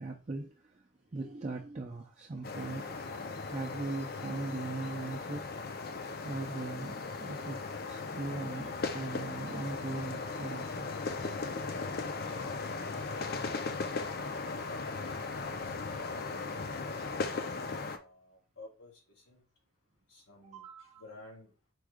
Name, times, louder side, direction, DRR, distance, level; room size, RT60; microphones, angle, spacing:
voice 1, 0.0-3.0 3.5-5.5 6.2-10.9 20.4-21.0, right 3 dB, 35° right, 0 dB, 0.4 m, -40 dB
sound 1, 2.4-18.0, left 4 dB, 45° left, 0.5 m, -37 dB
voice 2, 11.8-14.7 15.3-17.1 17.8-19.4 20.1-20.7 21.0-21.5, left 2 dB, 75° left, -1 dB, 2.2 m, -53 dB
4.6 x 2.3 x 4.8 m, 0.33 s
head